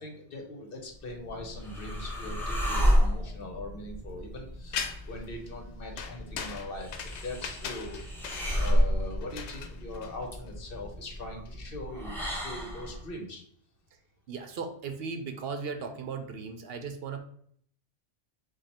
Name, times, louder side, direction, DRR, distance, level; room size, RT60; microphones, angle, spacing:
voice 1, 0.0-8.0 8.5-13.4, left 2 dB, 60° left, 3 dB, 1.1 m, -41 dB
sound 1, 1.0-13.0, equal, ahead, 0.8 m, -31 dB
sound 2, 4.7-5.2 6.0-10.5, left 7 dB, 85° left, 0.9 m, -39 dB
voice 2, 14.3-17.2, right 5 dB, 65° right, 6 dB, 0.8 m, -37 dB
5.0 x 2.3 x 4.2 m, 0.63 s
omnidirectional pair, 1.1 m